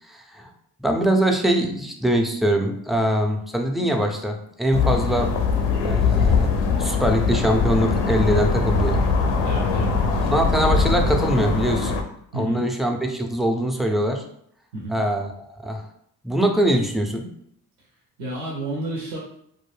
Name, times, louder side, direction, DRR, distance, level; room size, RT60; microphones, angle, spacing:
voice 1, 0.1-0.5 0.8-5.3 5.8-6.5 6.8-9.0 10.2-11.9 12.3-14.2 14.9-15.8 16.2-17.3, equal, ahead, 3 dB, 0.4 m, -22 dB
sound 1, 4.7-12.0, left 4 dB, 80° left, 0.6 m, -21 dB
voice 2, 9.4-10.0 12.3-12.6 14.7-15.0 18.2-19.2, right 1 dB, 85° right, -3 dB, 0.7 m, -30 dB
2.2 x 2.1 x 3.1 m, 0.70 s
hypercardioid pair, 45°, 45 cm